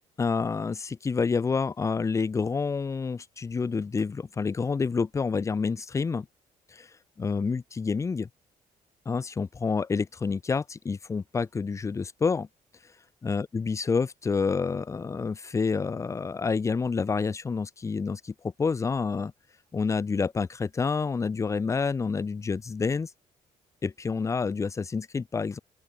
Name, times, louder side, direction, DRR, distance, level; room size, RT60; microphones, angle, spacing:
voice 1, 0.2-6.3 6.7-6.9 7.2-8.3 9.1-12.5 13.2-19.3 19.7-23.1 23.8-25.6, left 5 dB, 20° left, 0.3 m, -28 dB
open air
cardioid pair, 85°, 16 cm